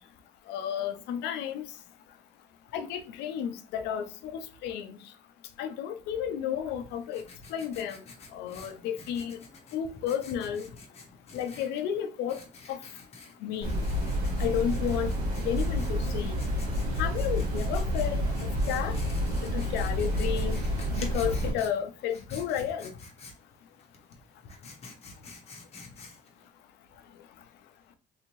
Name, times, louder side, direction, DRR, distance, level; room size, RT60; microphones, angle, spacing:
voice 1, 0.5-1.6 2.7-4.8 5.6-7.2 7.5-8.0 8.3-9.4 9.7-10.6 11.3-12.4 12.7-12.8 13.4-13.7 14.4-15.1 15.4-16.3 17.0-18.2 18.7-18.9 19.5-20.6 21.0-22.9, left 9 dB, 85° left, 0.5 m, -32 dB
Writing, 6.7-26.5, left 3 dB, 40° left, 0.9 m, -50 dB
sound 1, 13.6-21.5, equal, 70° right, 1.8 m, -29 dB
3.4 x 2.7 x 2.9 m
cardioid pair, 110°, 17 cm